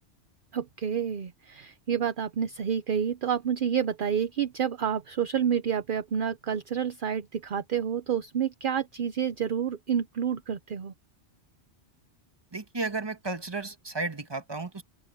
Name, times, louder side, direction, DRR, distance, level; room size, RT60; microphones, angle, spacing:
voice 1, 0.5-10.9, right 8 dB, 50° right, 0.8 m, -29 dB
voice 2, 12.5-14.8, right 3 dB, 20° right, 1.5 m, -33 dB
omnidirectional pair, 1.2 m